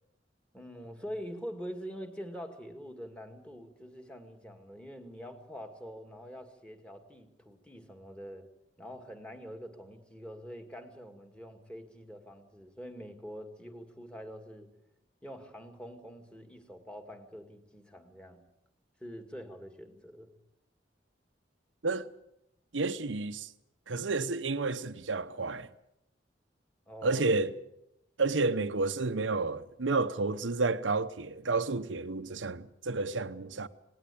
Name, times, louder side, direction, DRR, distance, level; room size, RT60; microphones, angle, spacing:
voice 1, 0.5-8.5 8.8-14.7 15.2-18.4 19.0-20.3 26.9-27.2, equal, 5° left, 2.2 m, -45 dB
voice 2, 22.7-23.5 23.9-25.7 27.0-27.5 28.2-33.7, right 3 dB, 90° right, 0.9 m, -30 dB
19.0 x 18.5 x 8.5 m
head